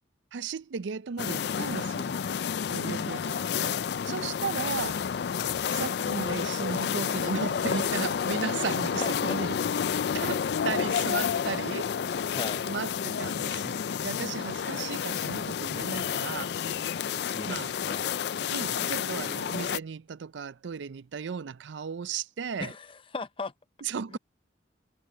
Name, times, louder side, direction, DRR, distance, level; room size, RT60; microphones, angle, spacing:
voice 1, 0.3-2.2 2.7-5.0 5.7-9.6 9.9-11.9 12.6-16.5 17.5-17.7 18.5-22.7 23.8-24.2, right 6 dB, 80° right, 0.5 m, -35 dB
sound 1, 1.2-19.8, left 7 dB, 60° left, 0.3 m, -30 dB
voice 2, 2.8-3.3 8.6-8.7 9.0-9.4 12.3-12.7 17.3-18.1 22.6-23.5 24.1-24.2, left 3 dB, 30° left, 0.7 m, -37 dB
head